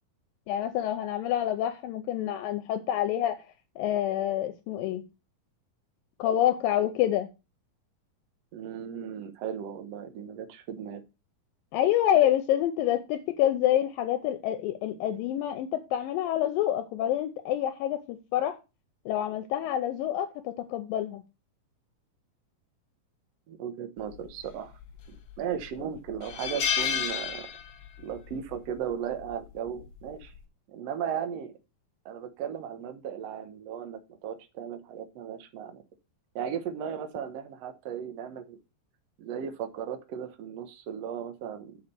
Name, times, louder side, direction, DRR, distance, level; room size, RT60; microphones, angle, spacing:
voice 1, 0.5-3.4 3.8-5.0 6.2-7.3 11.7-18.6 19.1-21.2, left 11 dB, 80° left, 2.3 m, -27 dB
voice 2, 8.5-11.0 23.5-24.7 25.1-27.5 28.0-30.3 30.7-31.5 32.0-35.8 36.3-38.6 39.2-41.8, right 8 dB, 70° right, 1.6 m, -36 dB
sound 1, 24.8-25.3 25.7-25.8 26.2-28.0 28.3-28.5 29.8-30.1, left 8 dB, 60° left, 1.7 m, -30 dB
7.0 x 5.1 x 6.5 m
omnidirectional pair, 4.3 m